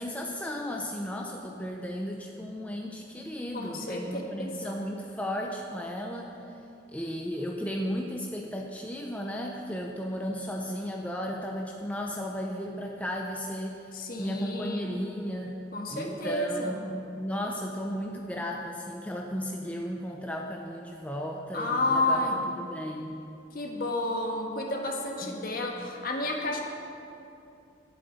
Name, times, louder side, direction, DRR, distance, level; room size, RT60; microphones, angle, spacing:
voice 1, 0.0-6.3 6.9-13.8 14.2-15.5 15.9-23.2 25.2-25.9, equal, 10° left, 0 dB, 0.6 m, -35 dB
voice 2, 3.5-4.7 13.9-14.9 15.7-16.7 21.5-22.4 23.5-26.6, left 2 dB, 50° left, 1 dB, 1.6 m, -30 dB
12.0 x 7.8 x 7.9 m, 2.7 s
head